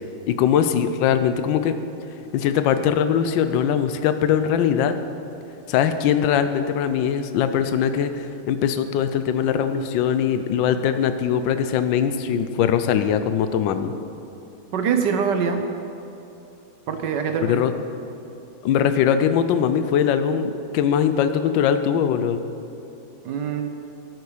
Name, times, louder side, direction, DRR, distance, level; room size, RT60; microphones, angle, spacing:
voice 1, 0.3-1.8 2.3-4.9 5.7-13.9 17.4-17.7 18.6-22.4, left 8 dB, 70° left, 10 dB, 1.3 m, -21 dB
voice 2, 14.7-15.6 16.9-17.6 23.2-23.7, right 6 dB, 65° right, 6 dB, 1.3 m, -23 dB
13.5 x 8.3 x 5.0 m, 2.8 s
omnidirectional pair, 2.3 m